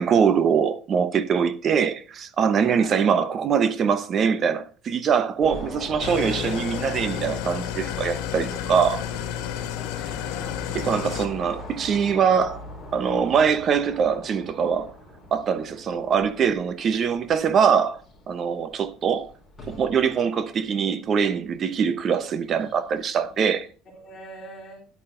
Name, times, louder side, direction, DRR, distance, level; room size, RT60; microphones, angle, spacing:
voice 1, 0.0-9.0 10.7-12.6 12.9-14.9 15.3-18.0 18.3-19.3 19.7-23.7, right 7 dB, 35° right, 0.9 m, -23 dB
sound 1, 5.4-23.7, left 2 dB, 10° left, 4.1 m, -43 dB
Engine starting / Idling, 6.0-11.3, left 10 dB, 80° left, 1.7 m, -31 dB
voice 2, 9.7-10.8 23.9-24.8, equal, 30° left, 4.0 m, -44 dB
9.9 x 8.8 x 3.8 m
cardioid pair, 145°, 0 cm